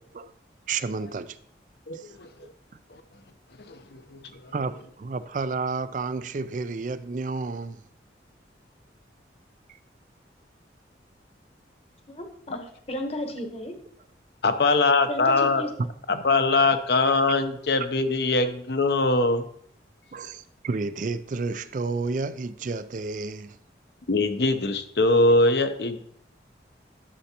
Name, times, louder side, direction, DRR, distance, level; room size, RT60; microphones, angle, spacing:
voice 1, 0.7-1.4 1.9-2.2 2.4-2.5 4.5-7.8 9.7-9.8 15.8-16.2 20.1-23.6, right 4 dB, 45° right, 0.4 m, -31 dB
voice 2, 1.9-2.3 3.7-4.2 14.4-15.6 16.2-19.4 24.1-26.1, left 3 dB, 65° left, 0.8 m, -22 dB
voice 3, 12.1-13.8 15.1-15.7, left 1 dB, 35° left, 1.0 m, -34 dB
11.5 x 7.0 x 2.9 m
head